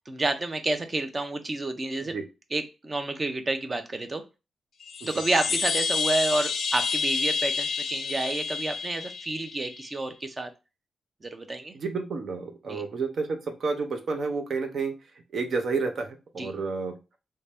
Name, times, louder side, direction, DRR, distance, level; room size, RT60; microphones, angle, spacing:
voice 1, 0.1-2.1 2.5-4.2 5.0-10.5 11.2-11.7 12.7-12.8 16.4-16.5, right 2 dB, 25° right, 7 dB, 0.5 m, -29 dB
sound 1, 4.8-9.9, left 5 dB, 60° left, 0.5 m, -29 dB
voice 2, 11.7-14.9 15.3-17.0, right 4 dB, 55° right, 5 dB, 0.7 m, -30 dB
3.2 x 2.7 x 3.4 m, 0.28 s
wide cardioid pair, 150°, 0 cm